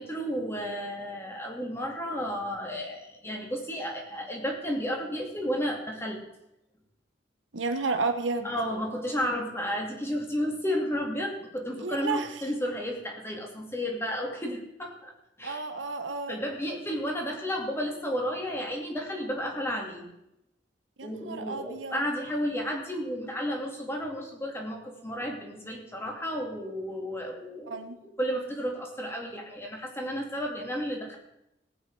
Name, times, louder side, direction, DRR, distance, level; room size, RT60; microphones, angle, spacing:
voice 1, 0.0-6.2 8.4-15.1 15.4-15.7 16.3-20.1 21.0-31.2, equal, 15° left, 0 dB, 2.5 m, -32 dB
voice 2, 7.5-8.5 11.8-12.3 15.4-16.4 21.0-22.0 27.7-28.0, right 3 dB, 80° right, 7 dB, 1.2 m, -31 dB
18.5 x 8.9 x 4.8 m, 0.85 s
head